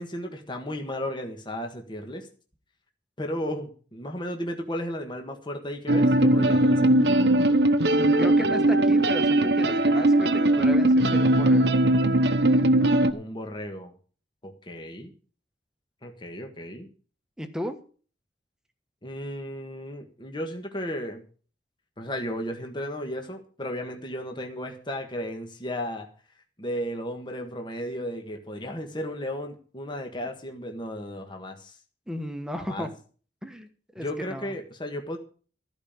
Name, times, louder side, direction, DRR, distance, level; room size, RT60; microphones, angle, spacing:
voice 1, 0.0-2.3 3.2-6.9 13.1-13.9 14.4-15.1 16.0-16.9 19.0-21.2 22.0-26.1 26.6-31.8 32.6-32.9 34.0-35.2, equal, 25° left, 3 dB, 1.5 m, -34 dB
sound 1, 5.9-13.1, right 1 dB, 65° right, 1.0 m, -20 dB
voice 2, 7.9-11.8 17.4-17.8 32.1-32.9 33.4-33.7 33.9-34.5, equal, 5° right, 7 dB, 1.3 m, -35 dB
14.5 x 5.2 x 8.8 m, 0.41 s
head